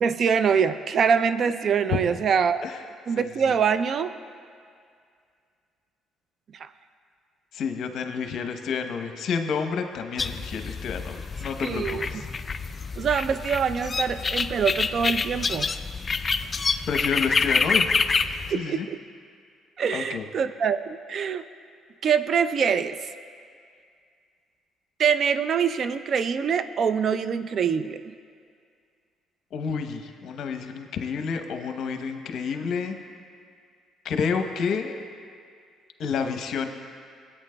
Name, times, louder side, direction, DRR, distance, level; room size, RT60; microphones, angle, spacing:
voice 1, 0.0-2.7 3.1-4.1 6.5-6.7 11.6-12.1 13.0-15.7 18.5-19.0 19.8-21.4 22.0-23.0 25.0-28.0, right 6 dB, 50° right, 12 dB, 0.4 m, -24 dB
voice 2, 7.5-12.3 16.9-17.9 18.5-18.9 19.9-20.2 29.5-33.0 34.0-34.9 36.0-36.7, left 6 dB, 65° left, 6 dB, 0.8 m, -29 dB
sound 1, 10.2-18.5, left 4 dB, 30° left, 0.3 m, -27 dB
17.5 x 8.8 x 2.2 m, 2.2 s
cardioid pair, 95°, 0 cm